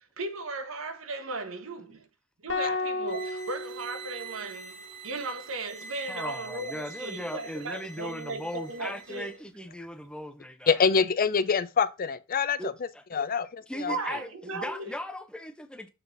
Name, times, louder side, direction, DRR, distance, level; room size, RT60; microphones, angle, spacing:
voice 1, 0.2-2.1 2.4-9.4 13.9-14.9, right 3 dB, 75° right, 1.2 m, -36 dB
sound 1, 2.5-4.8, left 3 dB, 60° left, 1.5 m, -33 dB
sound 2, 3.0-9.4, right 4 dB, 40° right, 1.5 m, -44 dB
voice 2, 6.1-10.8 12.6-13.3 13.7-15.9, equal, 5° left, 0.7 m, -38 dB
voice 3, 10.7-12.6 13.1-13.5 13.8-14.0, left 5 dB, 45° left, 0.5 m, -24 dB
7.0 x 4.3 x 3.9 m
head